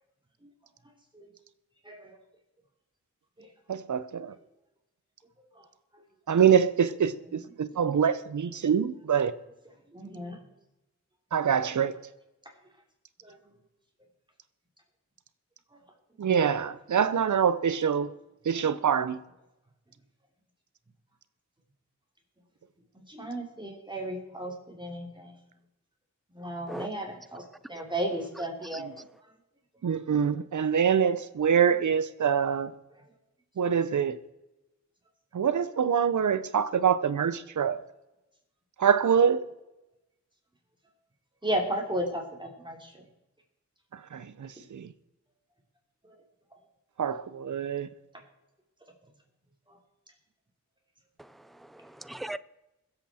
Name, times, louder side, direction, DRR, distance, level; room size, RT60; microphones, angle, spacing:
voice 1, 1.8-2.2 3.4-3.5 5.5-5.6 9.9-10.4 13.2-13.4 22.9-25.3 26.3-27.4 27.7-28.9 41.4-43.0 46.0-46.1 49.7-49.8, right 1 dB, 15° right, 3.1 m, -34 dB
voice 2, 3.7-4.3 6.3-9.3 11.3-11.9 16.2-18.1 18.4-19.2 29.8-32.7 33.6-34.2 35.3-37.8 38.8-39.4 43.9-44.9 47.0-47.9, right 7 dB, 80° right, 0.8 m, -25 dB
voice 3, 51.2-52.4, right 2 dB, ahead, 0.4 m, -39 dB
22.0 x 8.0 x 4.3 m
wide cardioid pair, 90°, 29 cm